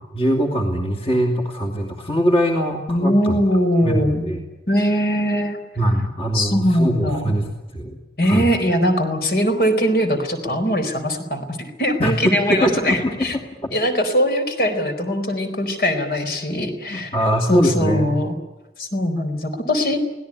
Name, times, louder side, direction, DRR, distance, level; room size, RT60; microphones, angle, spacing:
voice 1, 0.1-3.4 3.8-4.4 5.8-8.0 8.2-8.5 12.0-13.7 16.9-18.1, equal, 35° left, 2 dB, 2.8 m, -22 dB
voice 2, 2.9-4.3 4.7-5.6 6.3-7.3 8.2-13.4 13.7-17.1 17.5-18.3 18.8-20.0, equal, 60° left, 7 dB, 4.3 m, -21 dB
24.5 x 17.5 x 9.9 m, 1.1 s
head